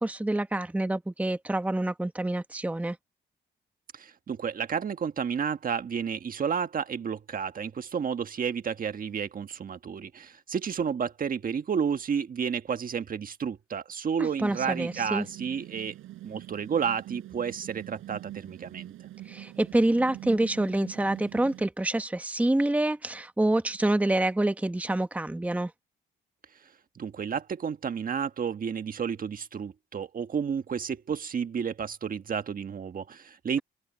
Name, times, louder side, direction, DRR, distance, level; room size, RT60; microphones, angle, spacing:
voice 1, 0.0-3.0 14.2-15.3 19.3-25.7, right 1 dB, 5° right, 1.1 m, -27 dB
voice 2, 3.9-15.9 16.2-18.9 26.9-33.6, right 7 dB, 45° right, 1.5 m, -31 dB
sound 1, 14.3-21.7, right 14 dB, 85° right, 7.6 m, -44 dB
open air
cardioid pair, 90°, 20 cm